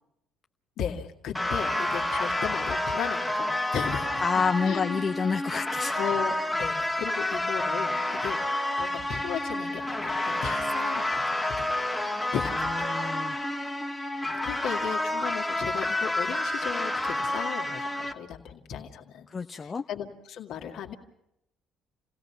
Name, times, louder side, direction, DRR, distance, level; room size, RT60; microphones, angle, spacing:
voice 1, 0.8-5.1 5.9-8.4 8.8-12.0 12.3-13.0 14.4-19.3 19.6-20.9, left 8 dB, 65° left, 2 dB, 2.2 m, -36 dB
sound 1, 1.3-18.1, left 1 dB, 5° left, 1.8 m, -29 dB
voice 2, 4.2-6.0 12.5-13.4 19.3-19.8, left 5 dB, 35° left, 5 dB, 0.7 m, -29 dB
29.0 x 17.0 x 5.8 m, 0.80 s
hypercardioid pair, 60°, 0 cm